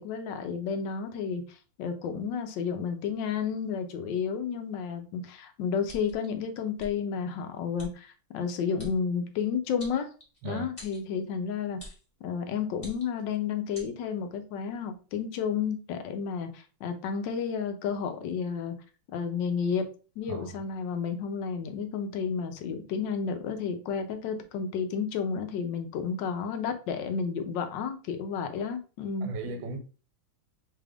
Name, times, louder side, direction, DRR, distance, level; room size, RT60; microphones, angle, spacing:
voice 1, 0.0-10.1 10.4-11.8 12.2-18.7 19.1-19.8 20.2-29.3, left 6 dB, 75° left, 1.2 m, -31 dB
sound 1, 5.8-6.3 6.8-6.9 7.8-7.9 8.8-8.9 9.8-10.4 10.8-11.0 11.8-12.0 12.7-13.2 13.7-13.9, left 1 dB, 30° left, 0.8 m, -45 dB
voice 2, 29.2-29.8, right 4 dB, 80° right, 1.3 m, -36 dB
3.4 x 2.4 x 3.3 m
omnidirectional pair, 2.1 m